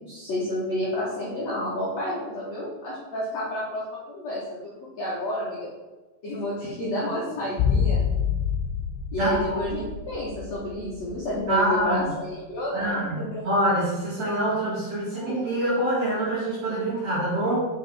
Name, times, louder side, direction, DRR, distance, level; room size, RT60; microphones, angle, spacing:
voice 1, 0.0-4.7 5.0-5.7 6.2-8.0 9.1-13.6, left 1 dB, 65° left, -7 dB, 1.8 m, -30 dB
sound 1, 7.6-11.8 12.1-12.2, left 7 dB, 90° left, 2.9 m, -27 dB
voice 2, 9.2-9.8 11.5-12.1 12.7-17.7, right 1 dB, 45° right, -8 dB, 2.5 m, -26 dB
6.5 x 5.4 x 4.8 m, 1.2 s
omnidirectional pair, 5.1 m